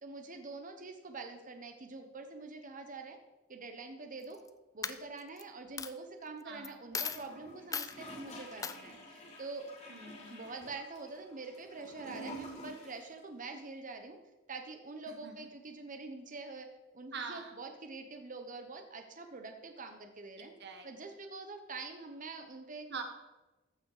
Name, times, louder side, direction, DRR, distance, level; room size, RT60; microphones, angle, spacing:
voice 1, 0.0-3.2 3.5-4.4 4.7-9.7 10.3-14.2 14.5-16.7 16.9-20.5 20.8-22.9, right 3 dB, 40° right, 6 dB, 1.1 m, -45 dB
Coin (dropping), 4.2-4.5 4.8-5.4 5.8-5.9 6.6-6.7 6.9-7.2 7.7-7.9 8.6-8.8, left 6 dB, 20° left, 0.4 m, -37 dB
Gurgling / Toilet flush, 7.0-13.1 13.4-13.5, right 1 dB, 35° left, 2.5 m, -49 dB
voice 2, 9.9-10.5 15.1-15.5 17.1-17.6 20.4-20.9 22.9-23.0, right 5 dB, 60° right, 5 dB, 1.5 m, -44 dB
14.5 x 6.1 x 5.0 m, 1.1 s
head